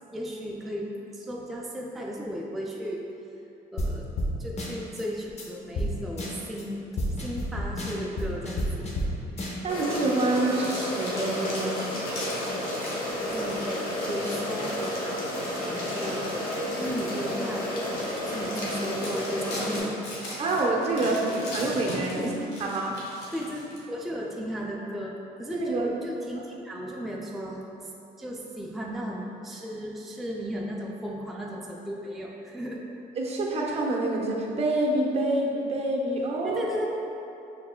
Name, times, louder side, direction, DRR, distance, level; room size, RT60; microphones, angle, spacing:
voice 1, 0.1-3.0 3.7-4.1 4.4-8.8 13.3-14.9 15.6-20.1 21.0-21.4 22.2-22.7 23.3-27.9 28.2-32.8 36.4-36.9, equal, ahead, -3 dB, 0.3 m, -35 dB
sound 1, 3.8-3.9 4.2-4.3 4.6-5.0 5.4-5.5 5.8-5.9 6.2-6.6 7.0-9.1 9.4-9.8, equal, 40° left, 0.7 m, -30 dB
voice 2, 9.4-11.9 20.4-22.3 22.6-22.9 25.5-25.9 33.2-36.6, right 2 dB, 40° right, -1 dB, 0.7 m, -27 dB
sound 2, 9.7-19.8, left 1 dB, 60° left, 1.1 m, -31 dB
sound 3, 10.5-16.9 17.4-17.6 18.1-18.2 18.5-24.0, left 1 dB, 85° left, 1.0 m, -40 dB
5.6 x 3.2 x 2.2 m, 2.9 s
cardioid pair, 110°, 17 cm